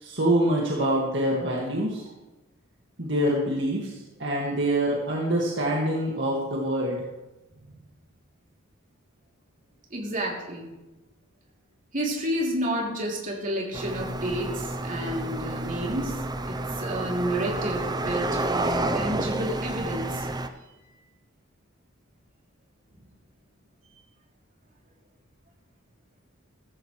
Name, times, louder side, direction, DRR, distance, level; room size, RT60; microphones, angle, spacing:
voice 1, 0.0-2.1 3.0-3.9 4.2-7.0, right 1 dB, 60° right, -3 dB, 2.0 m, -25 dB
voice 2, 9.9-10.7 11.9-16.1 16.5-20.3, right 1 dB, 40° right, -2 dB, 3.0 m, -30 dB
sound 1, 13.7-20.5, right 2 dB, 20° right, 0.6 m, -30 dB
15.0 x 13.5 x 3.2 m, 1.1 s
head